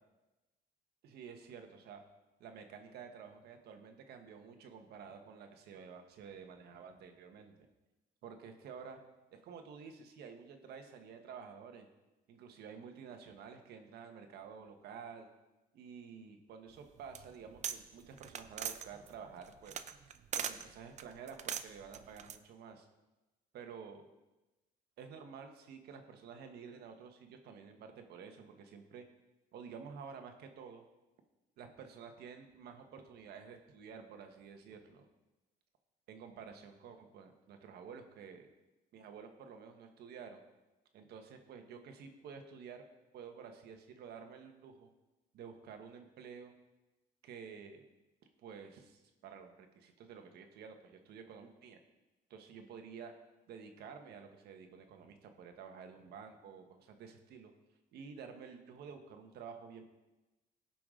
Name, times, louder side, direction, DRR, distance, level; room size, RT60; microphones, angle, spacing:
voice 1, 1.0-2.0 2.4-7.5 8.2-9.0 9.3-11.9 12.3-15.3 15.7-19.9 20.3-22.9 23.5-24.1 25.0-29.0 29.5-30.8 31.6-35.1 36.1-38.5 38.9-40.4 40.9-42.8 43.1-44.9 45.3-46.5 47.2-47.8 48.4-51.8 52.3-53.1 53.5-57.5 57.9-59.8, right 6 dB, 70° right, 5 dB, 1.4 m, -51 dB
sound 1, 16.8-17.8 18.1-20.6 21.0-22.4, right 8 dB, 45° right, 0.6 m, -40 dB
17.0 x 5.9 x 3.8 m, 1.0 s
cardioid pair, 110°, 17 cm